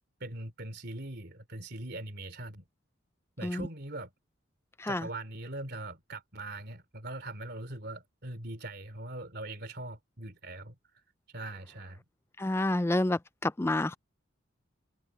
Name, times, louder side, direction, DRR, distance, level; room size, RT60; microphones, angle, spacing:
voice 1, 0.2-2.6 3.4-4.1 4.9-10.7 11.3-12.0, right 2 dB, 55° right, 3.4 m, -41 dB
voice 2, 12.4-14.0, left 2 dB, 10° left, 0.4 m, -29 dB
head